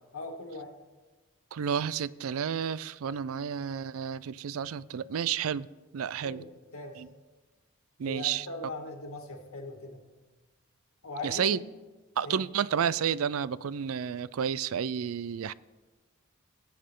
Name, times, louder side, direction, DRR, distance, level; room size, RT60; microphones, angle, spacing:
voice 1, 0.1-0.7 6.2-6.5 6.7-7.0 8.0-10.0 11.0-11.5 12.2-12.4, left 2 dB, 85° left, 2.2 m, -40 dB
voice 2, 1.5-5.7 5.9-6.4 7.0-7.1 8.0-8.5 11.2-11.6 12.2-15.5, right 7 dB, 80° right, 0.4 m, -31 dB
21.5 x 8.7 x 3.7 m
head